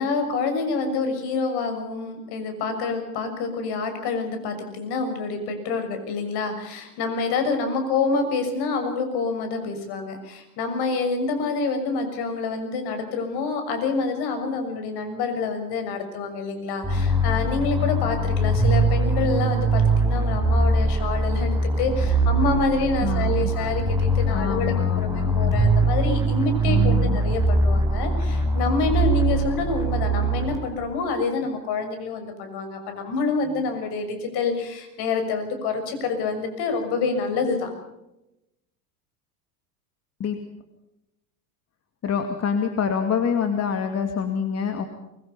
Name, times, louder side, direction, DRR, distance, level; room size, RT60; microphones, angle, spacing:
voice 1, 0.0-37.7, left 4 dB, 55° left, 6 dB, 6.7 m, -27 dB
sound 1, 16.8-31.0, right 2 dB, 5° right, 5.6 m, -22 dB
voice 2, 23.0-23.7 24.3-25.6 26.6-27.2 40.2-40.4 42.0-44.9, left 7 dB, 30° left, 6 dB, 2.4 m, -26 dB
23.5 x 22.5 x 5.6 m, 0.89 s
hypercardioid pair, 95°, 48 cm